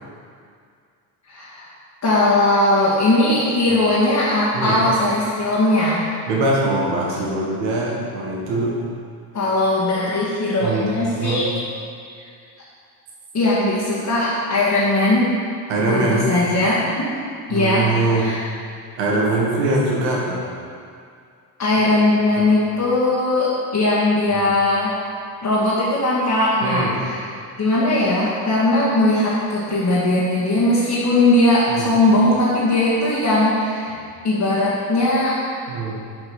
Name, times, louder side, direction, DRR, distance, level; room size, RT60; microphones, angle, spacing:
voice 1, 1.3-1.7 2.0-6.0 9.3-11.5 13.3-15.3 15.9-17.2 17.5-18.4 21.6-24.9 25.4-27.2 27.6-33.9 34.2-35.4, left 1 dB, 35° left, -8 dB, 2.1 m, -19 dB
voice 2, 6.3-8.8 10.6-10.9 11.2-11.4 15.7-16.2 17.5-18.3 19.0-20.4 22.3-22.5 24.3-24.5 26.6-26.9 31.7-31.9 35.7-35.9, right 2 dB, 90° right, -3 dB, 1.7 m, -22 dB
6.8 x 5.3 x 6.4 m, 2.2 s
supercardioid pair, 70°, 48 cm